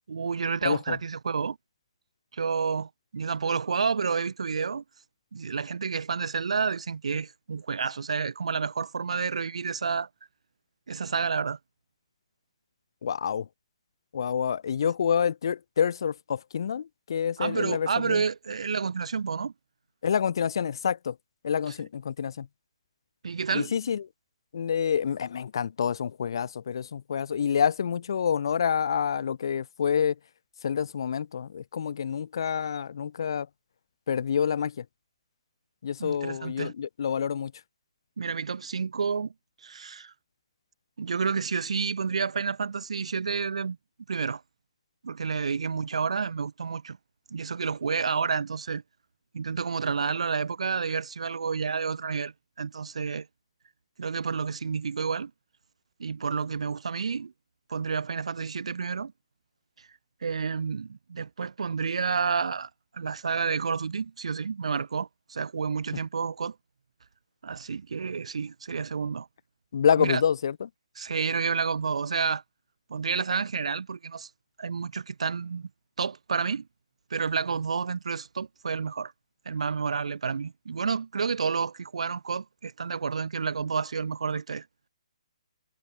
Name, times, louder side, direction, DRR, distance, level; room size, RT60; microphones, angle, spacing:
voice 1, 0.1-1.6 2.3-4.8 5.3-10.1 10.9-11.6 17.4-19.5 21.7-21.8 23.2-23.7 36.0-36.7 38.2-39.3 39.6-40.1 41.0-43.8 44.1-44.4 45.0-47.0 47.3-48.8 49.3-53.3 54.0-55.3 56.0-57.3 57.7-59.1 60.2-66.5 67.4-69.3 70.0-70.2 71.0-72.4 72.9-74.3 74.6-75.7 76.0-76.7 77.1-79.1 79.4-84.7, right 5 dB, 80° right, 1.0 m, -30 dB
voice 2, 0.6-1.0 13.0-13.5 14.1-18.2 20.0-21.2 21.4-22.5 23.5-24.1 24.5-30.2 30.6-33.5 34.1-34.8 35.8-37.5 69.7-70.7, left 7 dB, 45° left, 0.4 m, -27 dB
hypercardioid pair, 180°, 3 cm